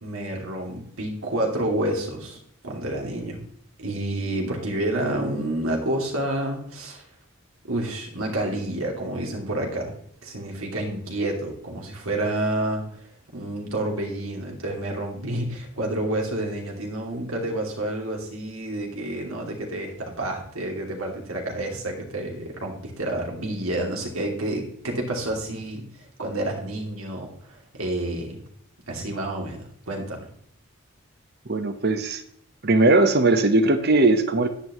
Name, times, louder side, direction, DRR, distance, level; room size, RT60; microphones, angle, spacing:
voice 1, 0.0-3.4 3.8-7.0 7.7-10.0 10.2-12.8 13.3-25.8 26.2-28.4 28.9-30.3, right 1 dB, 80° right, 0 dB, 2.7 m, -29 dB
voice 2, 31.5-32.2 32.6-34.5, right 2 dB, 50° right, 9 dB, 1.0 m, -19 dB
11.0 x 9.9 x 3.1 m, 0.66 s
head